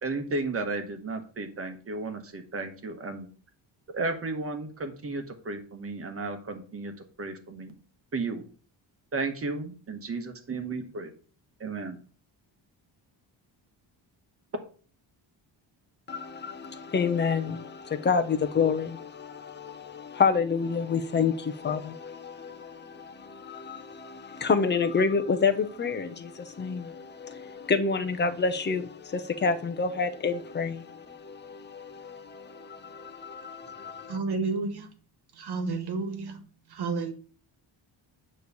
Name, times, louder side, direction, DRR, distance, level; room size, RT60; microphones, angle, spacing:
voice 1, 0.0-3.3 3.9-6.9 7.2-7.7 8.1-8.4 9.1-11.1 11.6-12.0, right 3 dB, 30° right, 7 dB, 1.1 m, -33 dB
voice 2, 16.1-34.2, left 5 dB, 25° left, 8 dB, 0.7 m, -29 dB
voice 3, 34.1-34.9 35.4-36.4 36.7-37.1, right 4 dB, 55° right, 9 dB, 1.4 m, -30 dB
9.4 x 3.2 x 6.7 m, 0.41 s
wide cardioid pair, 175°, 47 cm